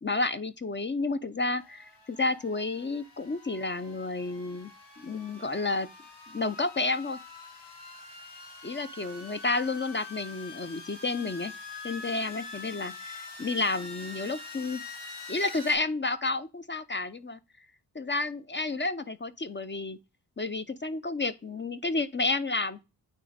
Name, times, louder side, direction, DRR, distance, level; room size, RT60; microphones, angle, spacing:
voice 1, 0.0-4.7 5.0-5.9 6.3-7.2 8.6-11.5 11.8-14.8 15.3-17.4 17.9-20.0 20.4-22.8, left 3 dB, 25° left, 0.6 m, -31 dB
sound 1, 1.6-15.8, left 3 dB, 65° left, 4.4 m, -45 dB
9.0 x 3.1 x 5.0 m
wide cardioid pair, 90°, 43 cm